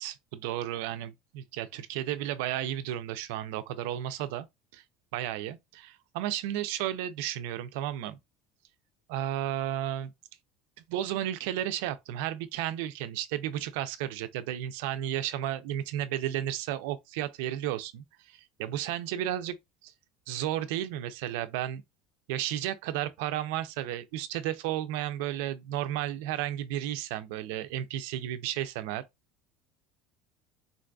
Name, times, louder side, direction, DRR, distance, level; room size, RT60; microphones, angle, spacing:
voice 1, 0.0-4.5 4.7-4.8 5.1-8.2 9.1-10.1 10.9-19.5 19.8-19.9 20.3-21.8 22.3-29.0, right 12 dB, 80° right, 0.4 m, -33 dB
3.9 x 2.5 x 2.3 m
cardioid pair, 160°, 0 cm